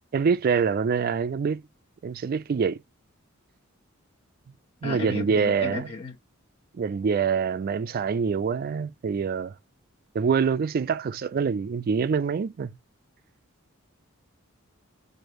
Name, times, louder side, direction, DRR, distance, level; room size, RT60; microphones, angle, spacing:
voice 1, 0.1-1.6 2.0-2.8 4.8-5.9 6.7-9.5 10.1-12.7, right 6 dB, 45° right, 0.3 m, -25 dB
voice 2, 4.8-6.1, left 3 dB, 25° left, 1.0 m, -34 dB
6.3 x 2.5 x 3.0 m
head